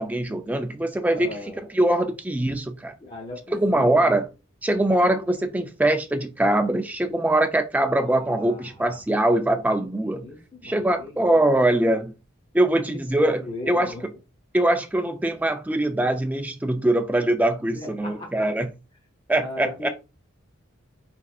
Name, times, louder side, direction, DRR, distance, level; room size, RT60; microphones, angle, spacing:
voice 1, 0.0-1.3 1.7-2.9 3.5-4.3 4.6-10.3 10.6-12.1 12.5-13.4 13.7-14.0 14.5-18.7 19.3-19.9, right 1 dB, 5° right, 0.3 m, -22 dB
voice 2, 1.1-1.6 3.0-4.0 7.9-9.0 9.9-11.3 12.8-13.0 13.4-14.0 17.6-18.5 19.3-19.9, left 2 dB, 25° left, 0.7 m, -39 dB
4.3 x 2.5 x 2.4 m
head